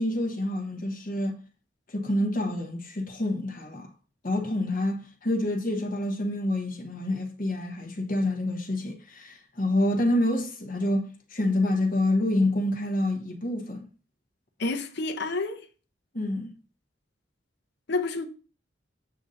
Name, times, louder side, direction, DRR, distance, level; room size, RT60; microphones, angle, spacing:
voice 1, 0.0-1.4 1.9-3.9 4.2-13.9 16.1-16.5, left 1 dB, 50° left, 1.3 m, -27 dB
voice 2, 14.6-15.6 17.9-18.3, left 3 dB, 65° left, 0.8 m, -29 dB
8.2 x 2.8 x 5.0 m
head